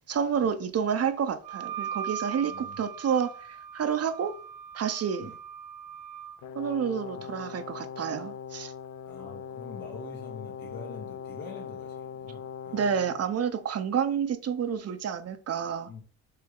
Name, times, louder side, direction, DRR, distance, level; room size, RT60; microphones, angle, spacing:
voice 1, 0.1-4.3 4.7-5.3 6.5-8.7 12.7-15.9, right 7 dB, 45° right, 0.6 m, -29 dB
Wind instrument woodwind instrument, 1.4-6.4, right 8 dB, 85° right, 0.7 m, -39 dB
voice 2, 2.4-2.9 5.2-5.4 7.1-7.4 9.1-12.9 15.9-16.0, left 4 dB, 70° left, 1.8 m, -45 dB
Brass instrument, 6.4-13.3, left 7 dB, 50° left, 0.4 m, -41 dB
4.3 x 3.3 x 3.7 m
supercardioid pair, 70°, 36 cm